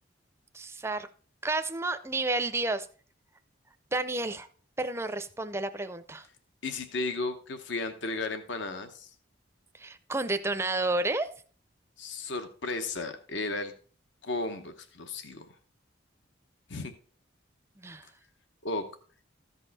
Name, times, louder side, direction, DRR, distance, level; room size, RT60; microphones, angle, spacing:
voice 1, 0.5-1.1 1.4-2.9 3.9-4.5 4.8-6.3 9.8-11.3 17.8-18.1, right 2 dB, 15° right, 10 dB, 0.5 m, -31 dB
voice 2, 6.6-9.1 12.0-13.7 14.2-15.5 16.7-16.9 18.6-18.8, left 3 dB, 70° left, 8 dB, 0.9 m, -34 dB
14.0 x 5.5 x 4.1 m, 0.42 s
head